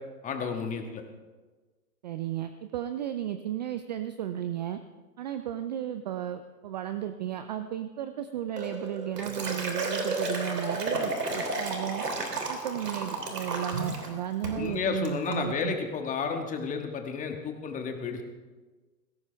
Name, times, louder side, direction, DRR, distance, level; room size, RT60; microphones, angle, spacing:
voice 1, 0.2-1.0 14.5-18.2, left 5 dB, 15° left, 4 dB, 1.6 m, -32 dB
voice 2, 2.0-4.8 5.2-12.0 12.5-15.8, right 11 dB, 30° right, 10 dB, 0.4 m, -34 dB
Liquid, 8.6-14.1 14.4-14.7 15.0-15.4, right 2 dB, 90° right, 3.1 m, -32 dB
18.5 x 16.5 x 3.4 m, 1.3 s
hypercardioid pair, 125°, 46 cm